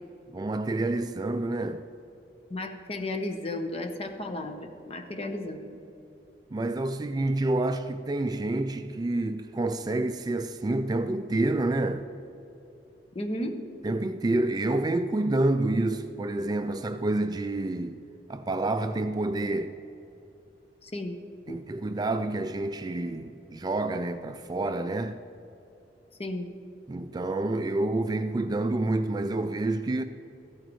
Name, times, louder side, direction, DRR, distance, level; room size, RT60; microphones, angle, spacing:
voice 1, 0.3-1.8 6.5-12.1 13.8-18.0 18.3-19.7 21.5-25.2 26.9-30.0, right 2 dB, 25° right, 0.3 m, -28 dB
voice 2, 2.5-5.7 13.1-13.6 20.8-21.1 21.5-21.6 26.2-26.4, left 1 dB, 35° left, 0.9 m, -34 dB
14.5 x 13.0 x 3.1 m
head